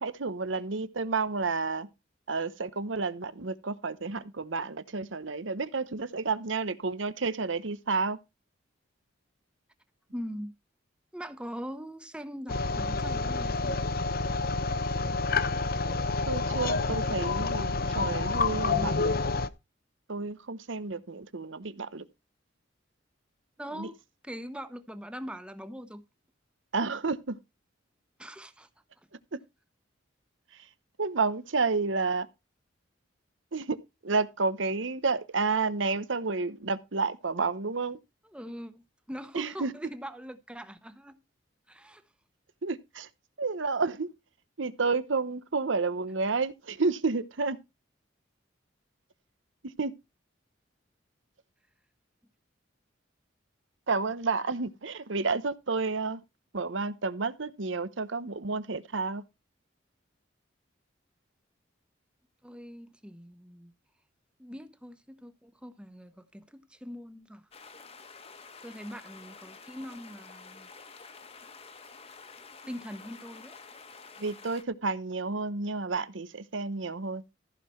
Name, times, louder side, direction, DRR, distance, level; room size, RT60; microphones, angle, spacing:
voice 1, 0.0-1.9 2.3-8.2 16.3-19.1 20.1-22.0 23.7-23.9 26.7-27.4 29.3-29.4 30.5-30.7 31.0-32.3 33.5-38.0 39.3-39.7 42.6-43.1 43.4-44.1 44.6-47.6 49.6-49.9 53.9-56.2 56.5-59.2 74.2-77.2, right 4 dB, 80° right, 1.0 m, -30 dB
voice 2, 10.1-10.5 11.1-13.8 23.6-24.0 24.2-26.0 28.2-28.7 38.3-41.2 41.7-42.0 62.4-63.7 64.4-67.4 68.6-70.7 72.7-73.5, equal, 5° right, 1.0 m, -42 dB
sound 1, 12.5-19.5, left 3 dB, 50° left, 0.8 m, -28 dB
sound 2, 67.5-74.6, left 5 dB, 30° left, 1.2 m, -49 dB
14.5 x 5.8 x 4.5 m
head